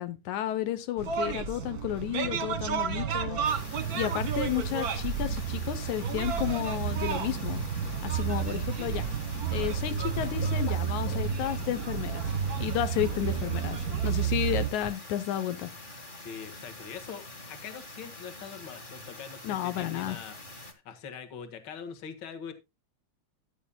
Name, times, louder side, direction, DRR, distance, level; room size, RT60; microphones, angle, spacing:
voice 1, 0.0-3.4 3.9-7.6 8.0-9.0 9.5-15.7 19.4-20.2, left 12 dB, 85° left, 2.3 m, -32 dB
sound 1, 1.0-14.7, right 7 dB, 50° right, 1.1 m, -31 dB
sound 2, 3.4-20.7, left 2 dB, 30° left, 0.9 m, -46 dB
sound 3, 9.7-11.8 12.5-14.5 14.8-14.9, right 2 dB, 60° left, 2.7 m, -41 dB
voice 2, 13.1-13.7 16.2-20.4 20.6-22.5, left 6 dB, 45° left, 1.9 m, -43 dB
14.0 x 9.5 x 2.3 m
omnidirectional pair, 3.3 m